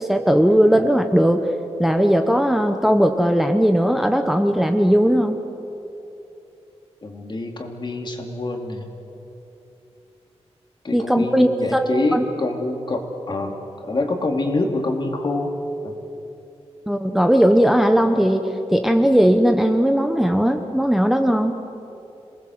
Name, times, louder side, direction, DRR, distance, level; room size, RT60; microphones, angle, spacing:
voice 1, 0.0-1.4 1.8-5.4 10.9-12.2 16.9-21.5, equal, ahead, 6 dB, 0.9 m, -18 dB
voice 2, 7.0-8.9 10.8-13.5 13.8-15.5 15.8-15.9, left 2 dB, 45° left, 3 dB, 2.6 m, -26 dB
27.5 x 19.5 x 7.9 m, 2.9 s
wide cardioid pair, 150°, 11 cm